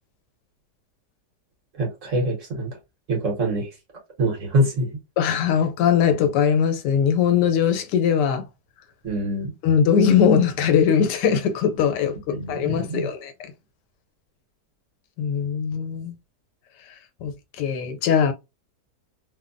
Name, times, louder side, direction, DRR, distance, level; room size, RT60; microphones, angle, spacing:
voice 1, 1.8-2.7 3.1-3.7 4.2-4.9 9.0-9.5 12.3-13.1, right 1 dB, 50° right, 1.4 m, -24 dB
voice 2, 5.2-8.5 9.6-13.3 15.2-16.1 17.2-18.3, left 7 dB, 85° left, 1.3 m, -20 dB
3.1 x 2.2 x 2.5 m
omnidirectional pair, 1.8 m